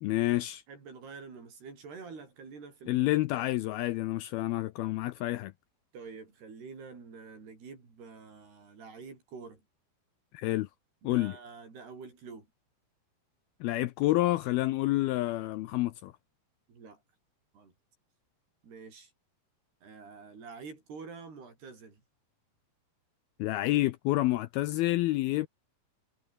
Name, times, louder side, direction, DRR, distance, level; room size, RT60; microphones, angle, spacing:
voice 1, 0.0-0.6 2.9-5.5 10.3-10.7 11.0-11.4 13.6-16.1 23.4-25.5, left 17 dB, 80° left, 2.3 m, -28 dB
voice 2, 0.7-3.2 5.9-9.6 11.0-12.5 16.7-17.0 17.5-17.7 18.6-19.1 19.8-22.0, right 5 dB, 65° right, 8.7 m, -47 dB
omnidirectional pair, 5.0 m